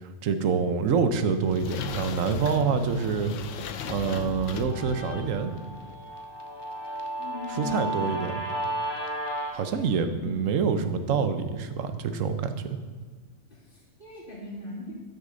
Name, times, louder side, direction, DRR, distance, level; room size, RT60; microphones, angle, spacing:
voice 1, 0.0-3.3 3.8-5.5 7.5-8.4 9.5-12.8, right 6 dB, 80° right, 9 dB, 1.1 m, -26 dB
sound 1, 1.0-6.0, left 8 dB, 75° left, 1.0 m, -38 dB
Guitar, 4.0-9.5, right 1 dB, 20° left, 1.0 m, -34 dB
voice 2, 7.2-7.9 10.0-10.3 13.5-14.9, left 2 dB, 45° left, -10 dB, 2.7 m, -39 dB
13.0 x 6.5 x 3.9 m, 1.5 s
omnidirectional pair, 1.4 m